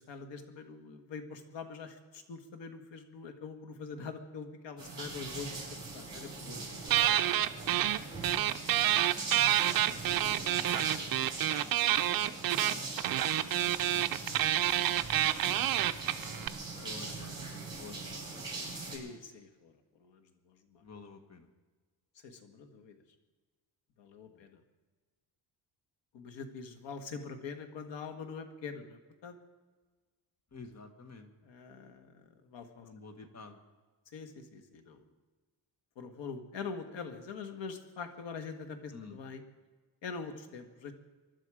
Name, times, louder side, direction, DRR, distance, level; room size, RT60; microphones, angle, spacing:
voice 1, 0.0-6.7 8.9-9.2 10.7-11.0 11.6-12.6 14.2-14.7 16.7-16.9 18.5-20.8 22.2-23.0 24.0-24.6 26.1-29.4 31.4-32.9 34.1-35.0 36.0-39.4 40.0-40.9, left 5 dB, 70° left, 7 dB, 1.9 m, -45 dB
sound 1, 4.8-19.0, right 3 dB, 10° right, 7.2 m, -41 dB
sound 2, 6.9-16.5, right 12 dB, 50° right, 0.6 m, -28 dB
voice 2, 7.1-7.4 7.8-7.9 9.6-10.6 11.0-11.4 13.1-13.9 16.2-18.6 20.8-21.5 24.2-24.5 30.5-31.3 32.8-33.6 38.9-39.2, left 4 dB, 35° left, 6 dB, 1.7 m, -52 dB
24.5 x 11.5 x 5.0 m, 1.3 s
cardioid pair, 135°, 44 cm